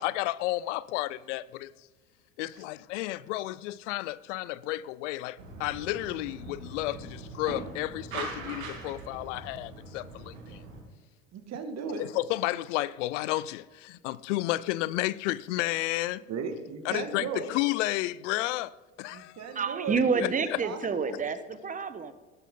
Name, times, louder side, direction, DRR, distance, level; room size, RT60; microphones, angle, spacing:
voice 1, 0.0-1.7 2.4-10.6 12.0-16.2 16.8-19.4 20.2-20.6, left 17 dB, 70° left, 0.6 m, -32 dB
sound 1, 5.4-10.8, right 3 dB, 85° right, 3.0 m, -41 dB
voice 2, 11.3-12.0 16.3-17.5 19.1-21.2, right 5 dB, 45° right, 2.1 m, -36 dB
voice 3, 19.5-22.1, right 5 dB, 20° right, 1.1 m, -29 dB
16.0 x 12.0 x 3.8 m
hypercardioid pair, 80°, 38 cm